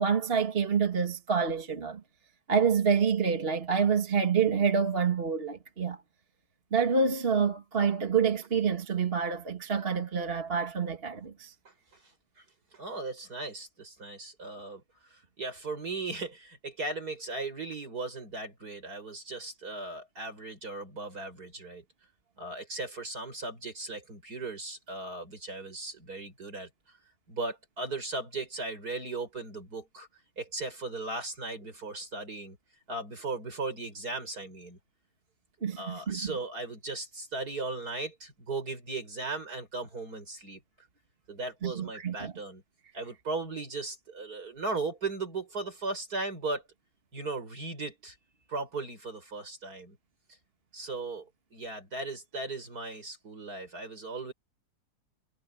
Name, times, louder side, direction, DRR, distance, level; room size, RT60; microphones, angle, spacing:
voice 1, 0.0-2.0 2.5-6.0 6.7-11.5 35.6-36.2 41.6-42.3, right 6 dB, 35° right, 1.8 m, -27 dB
voice 2, 12.7-14.8 15.1-21.8 22.4-26.7 27.3-30.1 30.4-32.6 32.9-34.8 35.8-40.6 41.3-42.6 42.9-46.6 47.1-48.2 48.5-50.0 50.7-54.3, right 3 dB, 55° right, 6.5 m, -37 dB
omnidirectional pair, 1.9 m